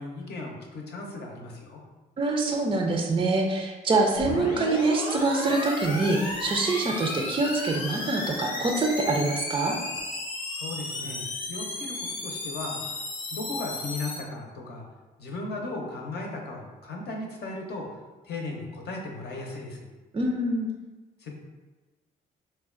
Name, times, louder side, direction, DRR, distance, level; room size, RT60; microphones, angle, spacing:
voice 1, 0.0-1.8 10.5-12.8 13.3-14.8 15.2-17.9 18.2-19.9 21.2-21.3, left 2 dB, 55° left, 0 dB, 0.7 m, -36 dB
voice 2, 2.2-9.8 20.1-20.7, right 3 dB, 25° right, 2 dB, 0.5 m, -25 dB
sound 1, 4.2-14.2, left 2 dB, 85° left, 0.5 m, -34 dB
4.1 x 2.2 x 2.4 m, 1.2 s
hypercardioid pair, 45°, 21 cm